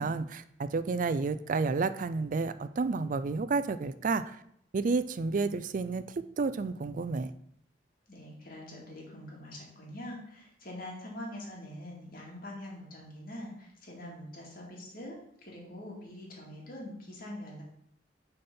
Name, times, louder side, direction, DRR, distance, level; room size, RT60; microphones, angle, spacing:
voice 1, 0.0-4.4 4.7-7.3, right 4 dB, 45° right, 13 dB, 0.4 m, -31 dB
voice 2, 8.1-17.6, left 1 dB, 55° left, -2 dB, 2.2 m, -44 dB
6.8 x 4.3 x 5.4 m, 0.71 s
head